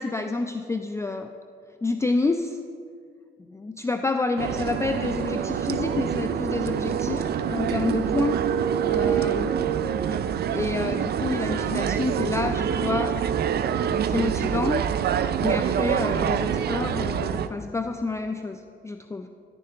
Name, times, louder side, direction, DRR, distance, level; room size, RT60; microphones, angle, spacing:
voice 1, 0.0-1.3 1.8-2.6 3.5-8.4 8.8-9.6 10.1-10.2 10.5-13.2 14.0-14.8 15.4-19.3, left 3 dB, 15° left, 7 dB, 0.4 m, -28 dB
sound 1, 4.4-17.5, right 8 dB, 55° right, 0.5 m, -26 dB
10.5 x 10.0 x 3.4 m, 2.4 s
cardioid pair, 90°, 20 cm